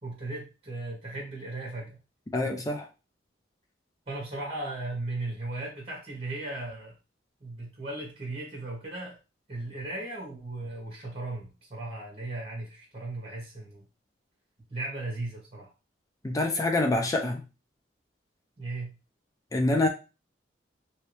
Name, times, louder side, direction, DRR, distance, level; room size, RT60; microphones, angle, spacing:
voice 1, 0.0-2.0 4.1-6.9 7.4-9.2 9.5-13.8 14.7-15.7 18.6-18.9, right 2 dB, 30° right, -2 dB, 1.2 m, -36 dB
voice 2, 2.3-2.9 16.2-17.4 19.5-19.9, left 2 dB, 20° left, 3 dB, 0.4 m, -26 dB
3.0 x 2.7 x 3.1 m, 0.29 s
head